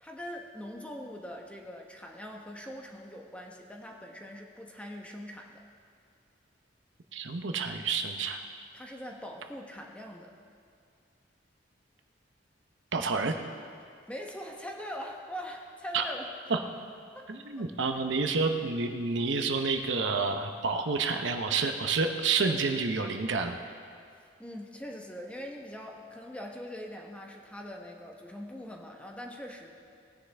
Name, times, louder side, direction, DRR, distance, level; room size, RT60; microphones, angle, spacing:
voice 1, 0.0-5.6 8.7-10.3 14.1-16.3 17.1-17.3 17.6-17.7 24.4-29.7, equal, 5° left, 0 dB, 1.0 m, -42 dB
voice 2, 7.1-8.4 12.9-13.4 15.9-16.0 16.5-16.6 17.3-23.6, right 4 dB, 80° right, 5 dB, 0.8 m, -29 dB
19.0 x 9.9 x 3.4 m, 2.3 s
head